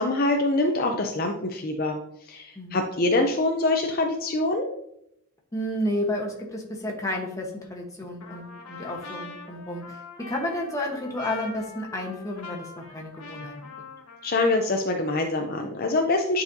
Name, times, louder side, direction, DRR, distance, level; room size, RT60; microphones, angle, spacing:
voice 1, 0.0-2.0 2.3-4.7 14.2-16.4, left 2 dB, 40° left, 3 dB, 0.5 m, -24 dB
voice 2, 5.5-13.7, left 1 dB, 15° left, 0 dB, 1.0 m, -31 dB
Trumpet, 8.2-14.8, left 4 dB, 90° left, 1.3 m, -43 dB
9.6 x 4.1 x 2.6 m, 0.76 s
head